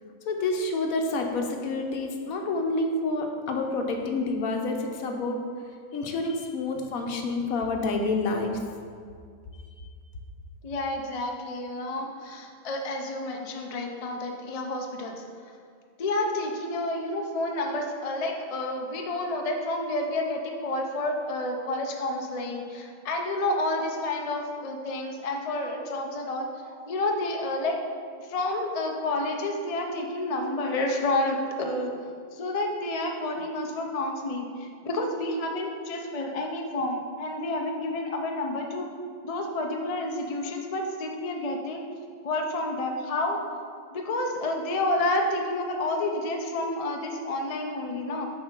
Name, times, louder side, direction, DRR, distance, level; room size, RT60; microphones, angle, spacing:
voice 1, 0.3-5.4 5.9-8.5 9.5-9.9, left 3 dB, 70° left, 3 dB, 1.1 m, -28 dB
voice 2, 10.6-15.1 16.0-27.8 28.2-31.9 32.3-38.9 39.2-41.8 42.2-43.4 43.9-48.3, left 2 dB, 50° left, 2 dB, 0.4 m, -30 dB
7.3 x 4.8 x 4.4 m, 2.2 s
omnidirectional pair, 1.6 m